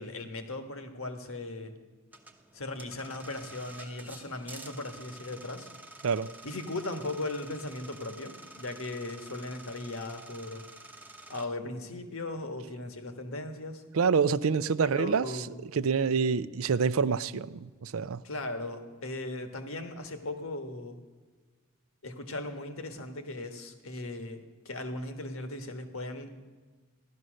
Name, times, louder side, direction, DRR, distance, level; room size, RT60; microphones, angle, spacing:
voice 1, 0.0-1.8 2.5-5.7 6.4-10.6 11.3-13.8 14.9-15.5 18.2-21.0 22.0-26.3, left 2 dB, 70° left, 1.5 m, -38 dB
sound 1, 2.1-11.5, right 2 dB, 10° right, 0.9 m, -49 dB
voice 2, 13.9-15.3 15.7-18.2, right 5 dB, 70° right, 0.5 m, -27 dB
15.5 x 12.5 x 6.4 m
head